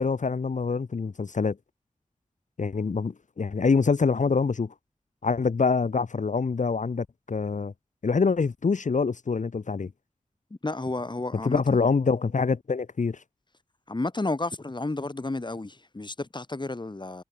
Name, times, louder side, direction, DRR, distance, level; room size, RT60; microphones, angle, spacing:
voice 1, 0.0-1.6 2.6-4.7 5.2-7.7 8.0-9.9 11.4-13.2, left 4 dB, 75° left, 1.3 m, -25 dB
voice 2, 10.6-11.8 13.9-17.2, left 2 dB, 35° left, 3.6 m, -31 dB
wide cardioid pair, 80°, 13 cm